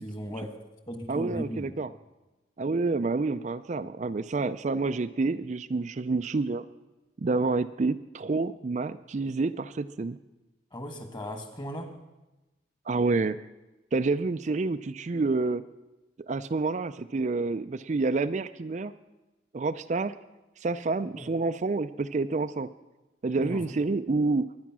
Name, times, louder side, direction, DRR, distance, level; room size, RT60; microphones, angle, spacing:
voice 1, 0.0-0.6 0.9-1.7 10.7-11.9 21.1-21.3 23.3-23.6, equal, 25° left, 6 dB, 1.8 m, -37 dB
voice 2, 1.1-1.9 2.6-6.6 7.2-10.2 12.9-13.4 13.9-15.6 16.3-18.9 19.5-20.2 20.6-22.7 23.2-24.5, right 3 dB, 40° right, 10 dB, 0.4 m, -28 dB
22.5 x 9.6 x 6.1 m, 1.1 s
head